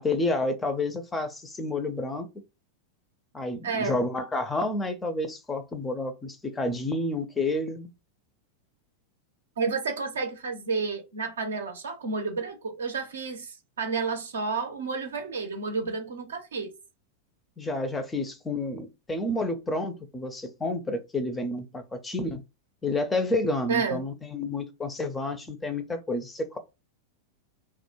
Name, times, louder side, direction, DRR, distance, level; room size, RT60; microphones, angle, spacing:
voice 1, 0.0-2.3 3.3-7.9 17.6-22.4 22.8-26.6, left 2 dB, 15° left, 0.4 m, -30 dB
voice 2, 3.6-4.0 9.6-16.7 23.7-24.0, right 4 dB, 65° right, 0.5 m, -31 dB
2.2 x 2.0 x 2.9 m
figure-of-eight pair, 90°, 0 cm